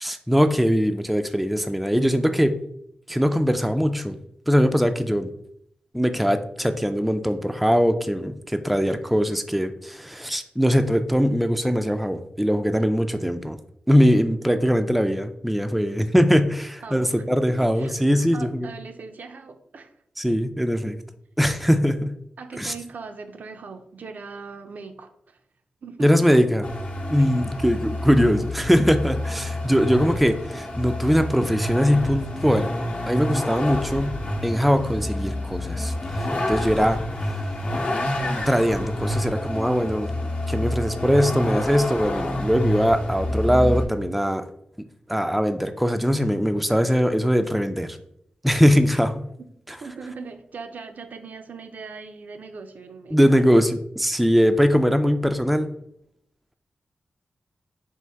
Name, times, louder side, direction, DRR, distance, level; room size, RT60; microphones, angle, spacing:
voice 1, 0.0-2.6 3.1-4.2 4.5-5.3 5.9-13.6 13.9-18.7 20.2-21.0 21.4-22.1 22.6-22.7 26.0-26.7 27.1-32.7 33.0-34.2 34.4-37.0 38.5-40.1 40.5-44.4 45.1-48.0 48.4-49.3 53.1-55.7, equal, ahead, 8 dB, 0.3 m, -21 dB
voice 2, 16.8-19.9 22.4-25.4 25.8-26.4 27.2-27.3 49.8-53.5 54.1-54.2, right 4 dB, 70° right, 7 dB, 0.4 m, -40 dB
Vehicle, 26.6-43.9, left 1 dB, 55° left, 0.8 m, -28 dB
4.4 x 2.5 x 3.4 m, 0.72 s
wide cardioid pair, 85°, 3 cm